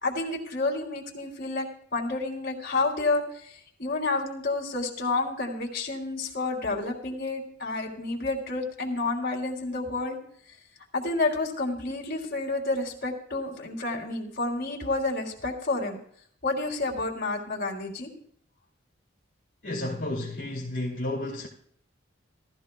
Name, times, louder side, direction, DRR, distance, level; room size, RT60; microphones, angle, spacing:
voice 1, 0.0-1.6 1.9-10.2 10.9-16.0 16.4-18.1, left 3 dB, 50° left, 3.1 m, -30 dB
voice 2, 19.6-21.5, left 1 dB, 65° left, 2.2 m, -32 dB
18.0 x 13.5 x 2.3 m
head